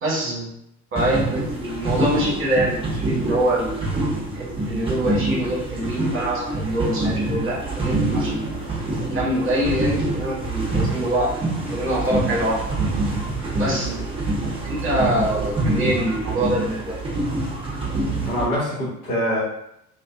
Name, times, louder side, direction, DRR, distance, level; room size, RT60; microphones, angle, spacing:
voice 1, 0.0-0.4 0.9-3.8 4.3-8.4 8.9-11.3 11.7-12.8 13.6-13.9 14.6-16.9, right 1 dB, 30° right, -5 dB, 1.1 m, -24 dB
sound 1, 1.0-18.5, right 2 dB, 15° right, 0.7 m, -26 dB
voice 2, 13.7-14.0 18.2-19.4, equal, 80° left, -8 dB, 1.3 m, -25 dB
2.5 x 2.4 x 2.4 m, 0.79 s
figure-of-eight pair, 60°, 43 cm